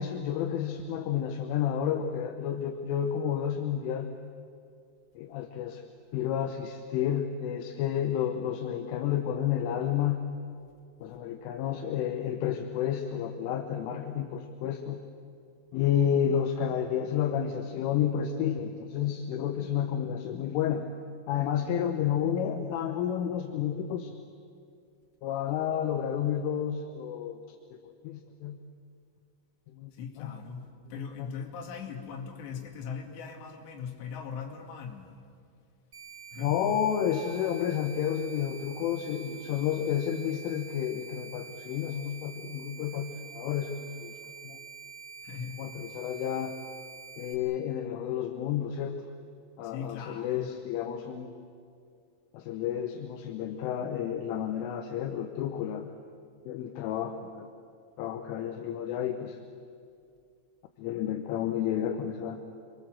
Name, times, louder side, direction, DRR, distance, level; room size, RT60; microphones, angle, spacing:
voice 1, 0.0-4.1 5.2-5.8 6.1-10.2 11.0-15.0 15.7-20.9 21.3-24.2 25.2-27.4 27.7-27.8 28.0-28.6 29.7-29.9 30.2-30.3 31.2-31.3 36.4-44.1 44.4-44.6 45.6-46.5 47.2-49.0 49.6-51.3 52.3-55.9 56.5-57.5 58.0-59.4 60.8-62.4, left 9 dB, 80° left, 5 dB, 3.5 m, -31 dB
voice 2, 29.9-35.1 36.3-36.6 45.2-45.7 49.6-50.5, left 6 dB, 60° left, 2 dB, 4.2 m, -40 dB
sound 1, 35.9-47.3, right 6 dB, 75° right, 0.9 m, -47 dB
27.5 x 23.5 x 7.7 m, 2.3 s
omnidirectional pair, 5.8 m